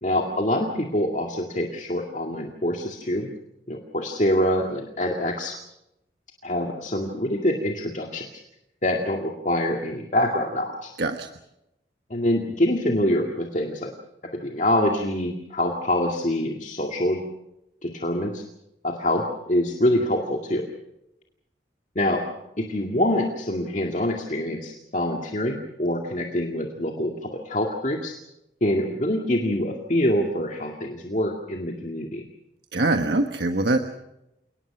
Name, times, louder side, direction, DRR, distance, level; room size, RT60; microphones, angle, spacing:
voice 1, 0.0-3.3 3.7-5.6 6.4-8.3 8.8-10.9 12.1-13.9 14.4-17.2 17.8-18.4 18.8-20.6 22.0-22.2 22.6-28.1 28.6-32.2, left 1 dB, 45° left, 2 dB, 2.2 m, -25 dB
voice 2, 32.7-33.8, right 2 dB, 70° right, 6 dB, 1.3 m, -23 dB
29.0 x 19.0 x 6.0 m, 0.87 s
head